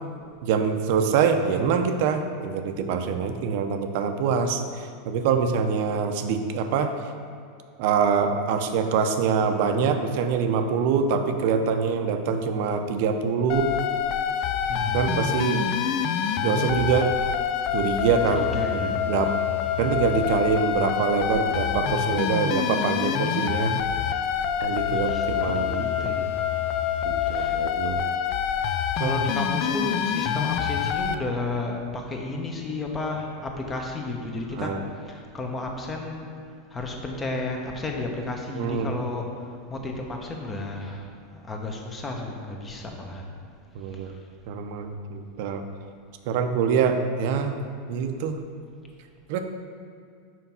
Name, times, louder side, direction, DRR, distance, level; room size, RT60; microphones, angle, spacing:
voice 1, 0.4-7.0 7.8-13.7 14.9-15.6 16.4-17.1 17.7-19.3 19.8-23.7 24.6-26.1 27.0-28.0 29.0-29.2 34.6-34.8 38.5-38.9 43.7-44.1 44.5-45.6 46.3-47.6 47.9-48.4 49.3-49.4, right 6 dB, 65° right, 7 dB, 0.6 m, -25 dB
sound 1, 13.5-31.1, left 8 dB, 55° left, 0.4 m, -26 dB
voice 2, 14.7-15.3 18.4-18.9 19.6-19.9 24.9-26.3 27.2-27.6 29.0-34.7 35.1-36.2 36.7-39.3 39.7-41.0 41.3-43.2, left 2 dB, 25° left, 1 dB, 1.1 m, -32 dB
5.8 x 4.7 x 5.6 m, 2.3 s
hypercardioid pair, 105°, 0 cm